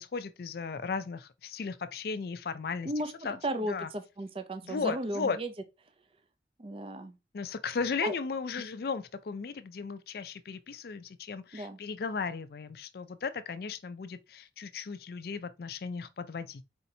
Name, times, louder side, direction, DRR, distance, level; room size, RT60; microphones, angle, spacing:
voice 1, 0.0-2.9 3.2-3.4 3.7-3.9 4.6-5.4 7.3-16.6, left 5 dB, 55° left, 0.4 m, -36 dB
voice 2, 3.4-5.5 6.6-7.2 8.0-8.1 11.5-11.8, right 1 dB, 30° right, 0.5 m, -35 dB
4.2 x 4.2 x 2.7 m
head